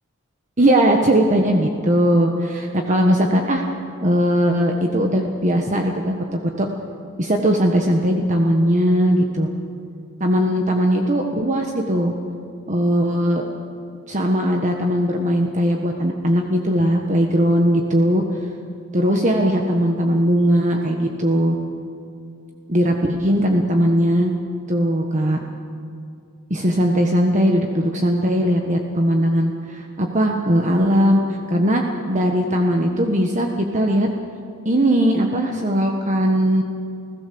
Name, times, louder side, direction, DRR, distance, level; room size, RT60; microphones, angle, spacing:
voice 1, 0.6-3.6 4.0-6.7 7.2-9.5 10.2-12.1 12.7-13.4 14.1-18.2 18.9-21.5 22.7-24.3 24.7-25.4 26.5-34.1 34.6-36.6, equal, 35° right, 2 dB, 1.4 m, -19 dB
30.0 x 16.5 x 7.0 m, 2.5 s
head